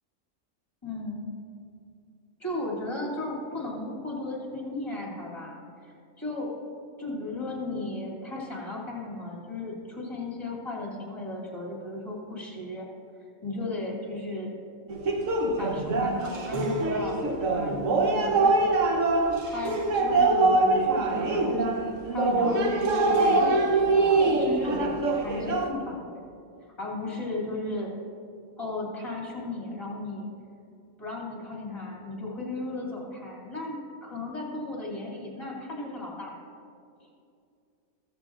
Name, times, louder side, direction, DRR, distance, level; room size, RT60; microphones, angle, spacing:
voice 1, 0.8-1.3 2.4-6.5 7.0-12.9 13.4-14.6 15.6-18.6 19.5-26.2 26.8-27.9 28.6-30.3 31.0-36.3, left 2 dB, 20° left, -3 dB, 2.5 m, -35 dB
sound 1, 14.9-25.7, right 3 dB, 70° right, 1.2 m, -24 dB
14.0 x 14.0 x 2.4 m, 2.4 s
omnidirectional pair, 1.4 m